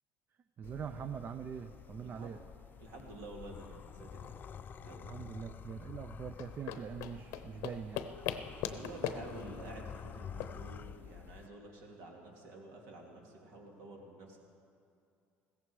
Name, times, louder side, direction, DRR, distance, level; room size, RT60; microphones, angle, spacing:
sound 1, 0.6-11.5, left 7 dB, 35° left, 0.4 m, -49 dB
voice 1, 0.6-2.4 5.0-8.1, right 7 dB, 40° right, 9 dB, 0.5 m, -43 dB
voice 2, 2.0-2.3 2.8-4.5 4.8-5.2 8.7-14.4, right 2 dB, 75° right, 0 dB, 2.7 m, -50 dB
sound 2, 6.3-11.5, left 10 dB, 75° left, 0.8 m, -42 dB
16.0 x 14.5 x 4.8 m, 2.5 s
supercardioid pair, 100°, 5 cm